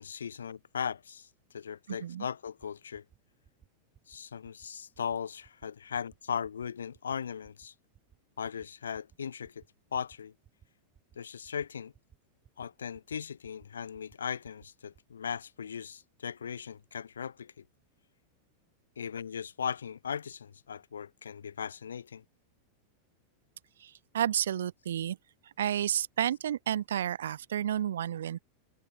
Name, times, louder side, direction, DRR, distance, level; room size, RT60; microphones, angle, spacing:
voice 1, 0.0-3.0 4.1-7.7 8.4-9.6 9.9-10.3 11.2-11.9 12.6-17.6 19.0-22.2, left 7 dB, 70° left, 1.2 m, -38 dB
voice 2, 1.9-2.3 23.8-25.2 25.6-28.4, right 10 dB, 60° right, 0.4 m, -31 dB
sound 1, 2.5-2.7 2.9-3.2 3.4-3.7 3.9-4.2 4.4-4.7 4.9-5.2 5.4-5.7 5.9-6.2 6.4-6.7 6.9-7.2 7.4-7.7 7.9-8.2 8.4-8.7 8.9-9.2 9.4-9.7 9.9-10.2 10.4-10.7 10.9-11.2 11.4-11.7 11.9-12.2 12.4-12.7 12.9-13.2 13.4-13.7 13.9-14.2 14.4-14.7 14.9-15.1, right 9 dB, 25° right, 7.4 m, -60 dB
figure-of-eight pair, 90°, 0 cm